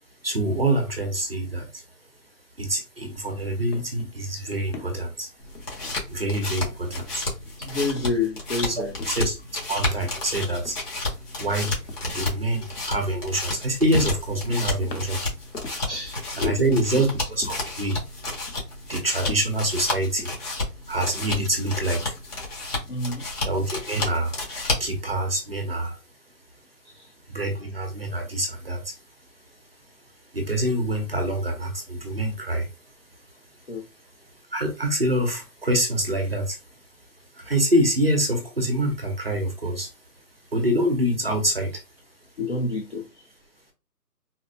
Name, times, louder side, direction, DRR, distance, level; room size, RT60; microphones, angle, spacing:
voice 1, 0.2-1.8 2.6-5.3 6.1-7.3 8.7-10.8 11.4-15.2 16.4-18.0 18.9-20.3 20.9-22.2 23.4-24.3 24.8-26.0 27.3-28.9 30.3-32.7 34.5-36.6 37.3-39.9 40.5-41.8, right 1 dB, 40° right, 0.6 m, -26 dB
sound 1, 3.0-3.2 3.5-6.5 6.8-7.7 8.0-8.3 8.8-13.6 13.9-16.0 16.5-17.9 18.3-20.3, left 2 dB, 90° left, 1.0 m, -40 dB
sound 2, 5.4-25.0, left 2 dB, 70° left, 1.8 m, -32 dB
voice 2, 7.6-8.9 15.9-17.0 22.9-23.3 26.8-27.1 33.7-33.8 42.4-43.3, left 3 dB, 45° left, 0.5 m, -29 dB
4.1 x 2.1 x 2.5 m
hypercardioid pair, 170°, 48 cm